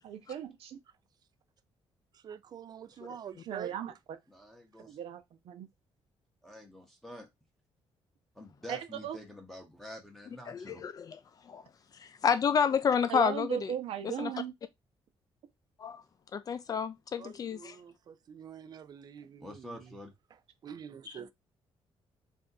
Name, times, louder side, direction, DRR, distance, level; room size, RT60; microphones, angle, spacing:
voice 1, 0.0-0.8 3.5-3.9 4.8-5.7 8.7-9.2 13.1-14.5, right 9 dB, 75° right, 0.8 m, -37 dB
voice 2, 2.1-3.7 17.2-20.0 20.6-21.3, right 8 dB, 45° right, 0.4 m, -46 dB
voice 3, 4.3-5.0 6.4-7.3 8.4-10.8 19.4-20.1, left 1 dB, 5° left, 0.8 m, -47 dB
voice 4, 10.5-11.2 11.5-11.6 12.0-13.7 14.0-14.3 15.8-16.0 16.3-17.8, left 7 dB, 40° left, 0.5 m, -30 dB
3.4 x 2.6 x 3.9 m
cardioid pair, 150°, 10 cm